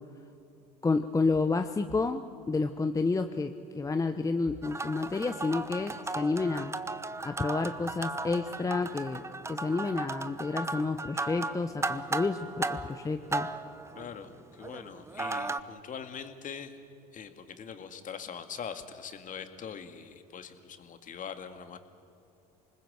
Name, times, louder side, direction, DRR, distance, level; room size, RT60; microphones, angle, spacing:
voice 1, 0.8-6.7 7.2-9.2 9.5-13.5, left 3 dB, 15° left, 8 dB, 0.9 m, -30 dB
sound 1, 4.6-15.6, right 3 dB, 15° right, 0.9 m, -36 dB
voice 2, 14.0-16.8 17.1-21.8, left 7 dB, 40° left, 8 dB, 2.2 m, -42 dB
27.0 x 20.5 x 7.9 m, 2.6 s
hypercardioid pair, 75°, 21 cm